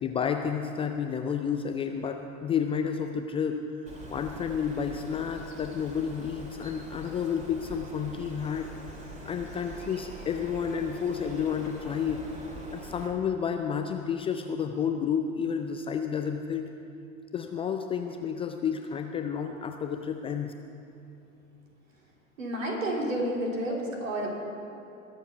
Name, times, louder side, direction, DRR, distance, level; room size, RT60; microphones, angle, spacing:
voice 1, 0.0-3.6 4.1-8.7 9.2-12.3 12.7-16.7 17.3-20.5, left 7 dB, 15° left, 5 dB, 0.4 m, -31 dB
Bird, 3.9-13.1, right 1 dB, 15° right, 2.3 m, -44 dB
voice 2, 22.4-24.3, right 1 dB, 70° right, -1 dB, 3.2 m, -30 dB
20.5 x 7.2 x 5.7 m, 2.6 s
figure-of-eight pair, 85°, 41 cm